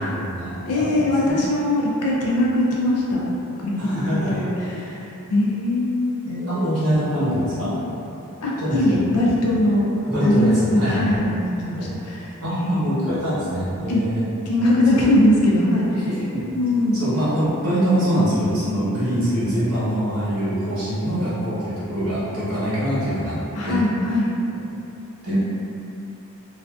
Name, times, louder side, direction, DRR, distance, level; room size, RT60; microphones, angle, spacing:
voice 1, 0.0-0.6 0.9-1.4 3.8-4.5 6.3-7.7 8.6-8.8 10.1-11.3 11.8-11.9 12.4-14.2 16.0-16.4 16.9-23.4 23.6-23.8 25.2-25.4, equal, 70° right, -11 dB, 1.0 m, -24 dB
voice 2, 0.6-3.3 3.6-6.2 8.4-9.8 10.2-12.9 13.9-14.0 14.4-15.9 16.5-17.0 23.5-24.3, left 1 dB, 90° left, -4 dB, 0.5 m, -21 dB
2.4 x 2.3 x 2.3 m, 2.9 s
head